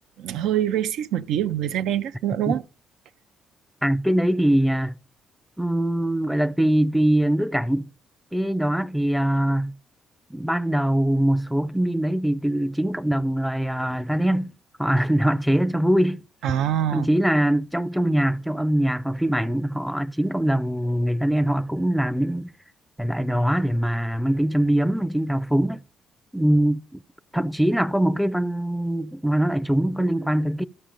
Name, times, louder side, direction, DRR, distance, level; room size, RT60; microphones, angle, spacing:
voice 1, 0.2-2.6 16.4-17.1, right 11 dB, 85° right, 0.5 m, -24 dB
voice 2, 3.8-4.9 5.6-7.9 8.3-9.7 10.3-14.5 14.8-16.2 16.9-22.5 23.0-25.8 26.3-27.0 27.3-30.6, right 1 dB, ahead, 0.4 m, -22 dB
12.5 x 5.5 x 5.1 m
cardioid pair, 90°, 0 cm